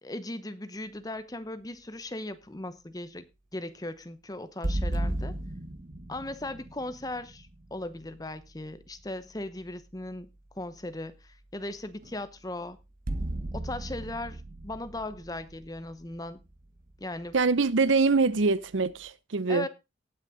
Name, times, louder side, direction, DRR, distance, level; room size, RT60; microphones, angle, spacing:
voice 1, 0.0-3.3 3.5-5.3 6.1-12.8 13.5-16.4 17.0-17.4 19.5-19.7, left 1 dB, 20° left, 0.9 m, -38 dB
sound 1, 4.6-8.4 12.0-12.2 13.1-16.9, right 1 dB, 45° right, 1.3 m, -35 dB
voice 2, 17.3-19.7, right 4 dB, 80° right, 0.7 m, -24 dB
18.5 x 6.4 x 3.8 m
head